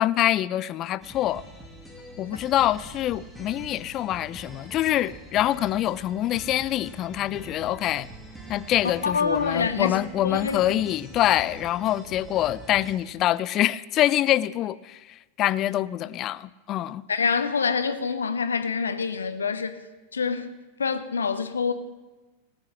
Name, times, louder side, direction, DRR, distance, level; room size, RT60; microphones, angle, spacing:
voice 1, 0.0-1.4 2.2-8.1 8.5-15.0 15.4-17.0, left 13 dB, 35° left, 0.3 m, -25 dB
sound 1, 1.0-13.0, right 1 dB, ahead, 2.0 m, -44 dB
voice 2, 9.0-10.8 17.1-19.8 20.1-20.5 20.8-21.7, left 5 dB, 70° left, 0.8 m, -26 dB
19.0 x 6.3 x 6.4 m
figure-of-eight pair, 90°, 0 cm